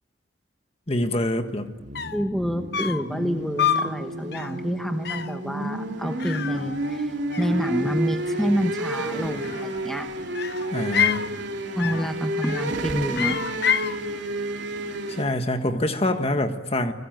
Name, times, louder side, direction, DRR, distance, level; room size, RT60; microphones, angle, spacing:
voice 1, 0.9-1.7 10.7-11.3 15.1-16.9, left 1 dB, 30° left, 7 dB, 1.6 m, -25 dB
sound 1, 1.6-15.2, right 1 dB, 70° right, 2.9 m, -31 dB
sound 2, 1.7-1.8 2.0-2.3 2.7-3.1 3.6-4.0 4.3-4.6 5.1-5.4 6.2-7.1 7.3-8.0 9.3-9.9 10.3-11.3 11.8-12.1 12.4-12.8 13.1-14.0, left 8 dB, 60° left, 0.8 m, -27 dB
voice 2, 2.1-10.1 11.7-13.4, equal, ahead, 5 dB, 1.0 m, -28 dB
30.0 x 20.5 x 9.2 m, 1.3 s
head